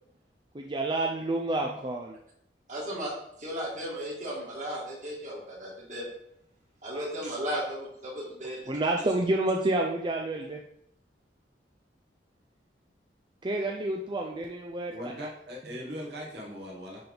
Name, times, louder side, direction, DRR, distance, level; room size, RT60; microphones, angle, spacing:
voice 1, 0.5-2.2 6.9-7.1 8.7-10.6 13.4-14.9, right 2 dB, 25° right, 1 dB, 0.5 m, -29 dB
voice 2, 2.7-3.1 3.4-6.1 6.8-8.7, equal, 45° right, -4 dB, 2.5 m, -35 dB
voice 3, 14.9-17.0, equal, 65° right, -2 dB, 1.6 m, -39 dB
10.0 x 3.5 x 3.9 m, 0.76 s
head